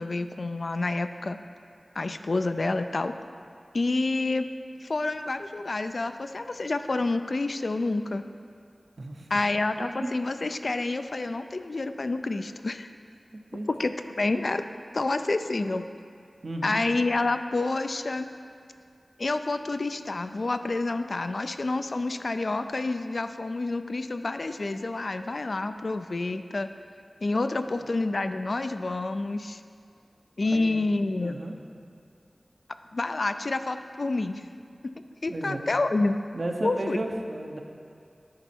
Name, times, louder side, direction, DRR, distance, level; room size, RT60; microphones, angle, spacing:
voice 1, 0.0-1.4 2.0-3.1 3.7-4.5 4.8-8.2 9.3-12.9 13.7-13.9 14.2-14.7 14.9-15.9 16.6-18.3 19.2-26.7 27.2-29.6 30.4-31.4 32.9-34.4 35.2-36.2 36.6-37.0, left 2 dB, 70° left, 9 dB, 0.3 m, -28 dB
voice 2, 9.0-9.3 13.5-13.7 16.4-16.8 27.5-27.8 30.4-30.8 31.2-31.5 35.3-35.6 36.3-37.6, right 1 dB, 65° right, 2 dB, 0.7 m, -34 dB
10.5 x 4.1 x 4.4 m, 2.3 s
wide cardioid pair, 45°, 0 cm